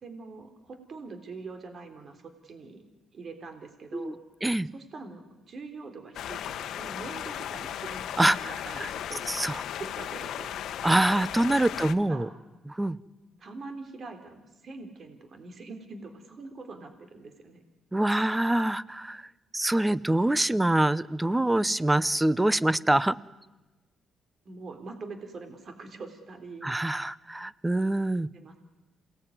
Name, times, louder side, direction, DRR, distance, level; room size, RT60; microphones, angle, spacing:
voice 1, 0.0-2.8 3.1-4.2 4.7-9.2 9.8-10.6 12.0-12.4 13.4-17.6 24.5-26.8 28.3-28.6, right 3 dB, 50° right, 7 dB, 3.5 m, -43 dB
sound 1, 6.1-11.9, left 10 dB, 75° left, 1.1 m, -36 dB
voice 2, 8.2-8.9 9.3-9.6 10.8-12.3 12.7-13.0 17.9-19.3 19.5-23.2 26.6-28.3, right 1 dB, 10° right, 19 dB, 0.8 m, -25 dB
27.5 x 19.0 x 9.7 m, 1.1 s
cardioid pair, 90°, 0 cm